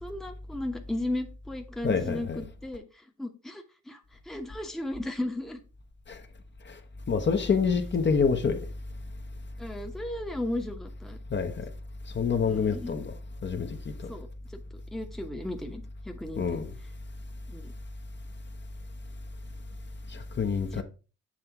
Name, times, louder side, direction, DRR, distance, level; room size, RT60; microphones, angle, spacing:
voice 1, 0.0-2.8 3.2-4.0 4.3-5.6 9.6-11.2 12.4-13.0 14.1-14.6 14.9-16.4 17.5-17.7 20.7-20.8, left 1 dB, ahead, 0.9 m, -35 dB
voice 2, 1.8-2.4 6.1-6.2 7.1-8.6 11.3-11.6 12.1-13.1 13.4-13.8 14.0-14.1 16.4-16.7 20.1-20.8, left 5 dB, 40° left, 0.9 m, -27 dB
7.5 x 3.4 x 4.7 m
cardioid pair, 90°, 30 cm